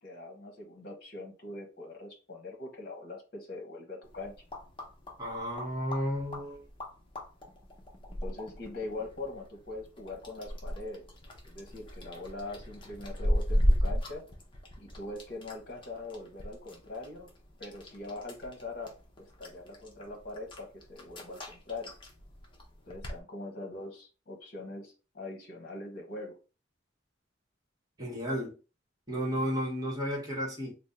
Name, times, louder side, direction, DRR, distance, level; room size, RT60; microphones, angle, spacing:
voice 1, 0.0-4.3 8.2-11.1 11.4-14.2 14.8-17.3 17.6-18.9 19.2-21.9 22.9-26.4, left 2 dB, 50° left, 0.9 m, -42 dB
sound 1, 4.0-23.2, equal, 25° left, 0.6 m, -36 dB
voice 2, 5.2-6.6 28.0-28.5 29.1-30.7, equal, 20° right, 1.0 m, -33 dB
3.4 x 2.0 x 4.0 m
head